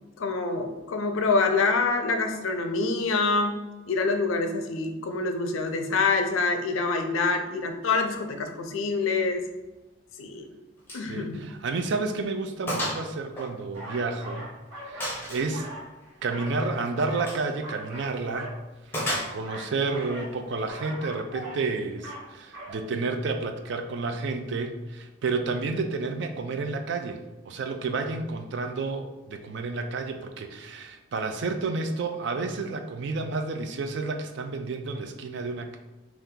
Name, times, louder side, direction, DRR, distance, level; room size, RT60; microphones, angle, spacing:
voice 1, 0.2-3.5 3.9-9.4 10.2-10.5 10.9-11.5, left 3 dB, 80° left, 6 dB, 0.4 m, -26 dB
Gunshot gunfire, 10.9-11.1 11.4-11.5 12.0-12.1 12.7-13.1 13.4-14.3 15.0-15.5 17.2-17.5 18.9-19.7, equal, 10° left, 0.6 m, -32 dB
voice 2, 11.1-14.5 14.9-15.7 16.2-18.5 19.3-35.8, right 3 dB, 60° right, 6 dB, 0.3 m, -30 dB
sound 1, 13.7-15.2 15.4-16.8 17.0-18.6 18.9-20.3 20.7-21.6 21.9-22.3 22.5-22.7, equal, 75° right, 1.2 m, -41 dB
2.7 x 2.4 x 3.6 m, 1.1 s
head